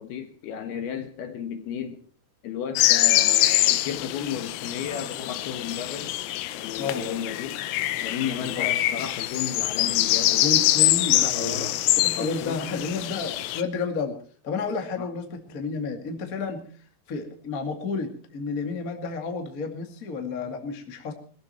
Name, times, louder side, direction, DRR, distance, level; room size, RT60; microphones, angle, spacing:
voice 1, 0.0-2.0 2.4-6.1 6.5-7.6 8.0-10.5 11.3-11.8 12.2-12.6 15.0-15.1, left 8 dB, 65° left, 2.8 m, -34 dB
sound 1, 2.8-13.6, left 15 dB, 85° left, 3.5 m, -24 dB
voice 2, 6.8-7.2 8.4-8.7 10.4-11.7 12.0-14.1 14.4-16.6 17.1-21.1, left 4 dB, 40° left, 1.2 m, -31 dB
21.5 x 15.0 x 4.4 m
omnidirectional pair, 5.7 m